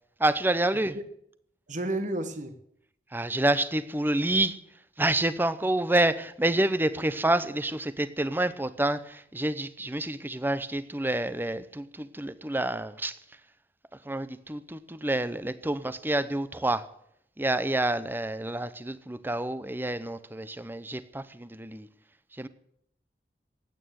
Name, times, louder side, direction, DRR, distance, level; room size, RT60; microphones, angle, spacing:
voice 1, 0.2-1.0 3.1-4.6 5.0-13.2 14.0-16.8 17.4-21.9 22.3-22.5, right 1 dB, 10° right, 0.8 m, -28 dB
voice 2, 1.7-2.5, right 1 dB, 45° right, 1.3 m, -31 dB
15.5 x 9.2 x 9.3 m
head